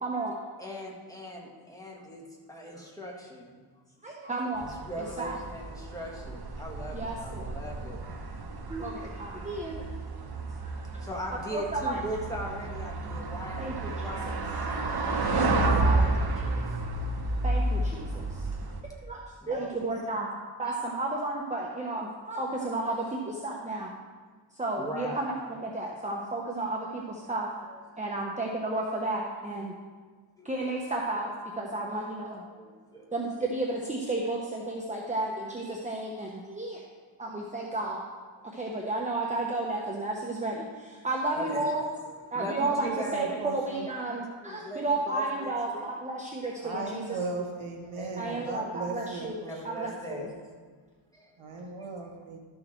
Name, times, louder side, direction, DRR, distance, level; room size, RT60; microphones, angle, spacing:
voice 1, 0.0-0.4 4.0-5.3 6.9-7.5 8.7-9.9 10.6-11.0 11.5-12.0 13.6-13.9 14.3-14.4 15.7-16.0 17.4-18.5 19.0-19.2 19.5-23.9 24.5-25.3 25.6-27.5 28.0-29.7 30.4-32.4 33.1-36.8 37.2-38.1 38.5-41.8 42.3-47.2 48.2-50.2, right 2 dB, 15° right, -2 dB, 1.0 m, -32 dB
voice 2, 0.6-3.6 4.6-8.3 9.3-9.5 10.3-15.0 15.4-16.6 18.6-18.8 19.4-19.8 20.6-20.7 24.8-25.2 27.2-27.8 30.4-30.8 31.7-31.8 32.3-33.1 41.3-41.8 42.1-43.4 43.8-44.0 44.4-45.9 47.9-48.5 49.5-50.3 51.1-51.3, equal, 5° left, -2 dB, 1.9 m, -40 dB
sound 1, 4.6-18.8, right 2 dB, 50° right, 1.1 m, -31 dB
voice 3, 42.6-43.9 46.6-49.6 50.1-50.4 51.4-52.4, right 3 dB, 85° right, 1 dB, 1.6 m, -37 dB
12.0 x 6.6 x 4.5 m, 1.5 s
wide cardioid pair, 100°, 48 cm